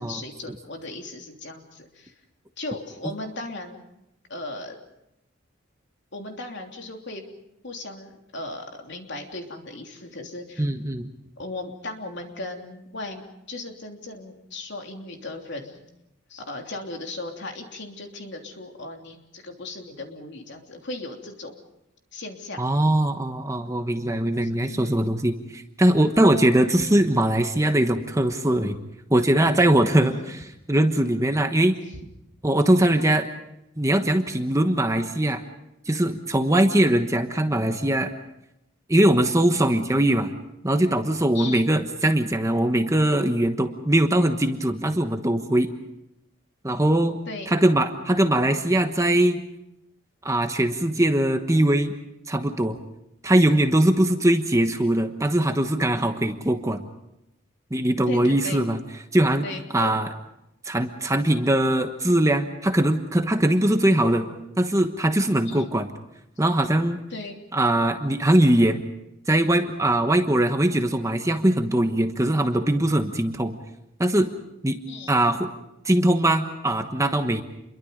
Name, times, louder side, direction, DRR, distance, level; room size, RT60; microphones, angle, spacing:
voice 1, 0.0-2.1 2.6-3.8 4.3-4.8 6.1-7.2 7.6-10.6 11.4-15.8 16.3-21.5 22.1-22.7 24.4-25.0 30.0-30.3 41.3-41.7 47.3-47.5 58.1-58.6 59.4-59.9 65.4-65.7 67.1-67.4 74.9-75.2, left 2 dB, 60° left, 3 dB, 3.2 m, -37 dB
voice 2, 10.6-11.1 22.6-28.8 29.1-30.1 30.7-31.8 32.4-33.3 33.8-35.5 35.9-38.1 38.9-40.3 40.6-45.7 46.6-47.2 47.5-49.4 50.2-51.9 52.3-52.8 53.2-56.9 57.7-58.8 59.1-59.4 59.7-60.1 60.6-64.3 64.6-65.9 66.4-67.0 67.5-68.8 69.3-73.6 74.0-74.3 74.6-74.8 75.1-75.5 75.8-77.4, right 1 dB, 15° right, 6 dB, 1.2 m, -21 dB
28.5 x 22.5 x 5.2 m, 0.85 s
head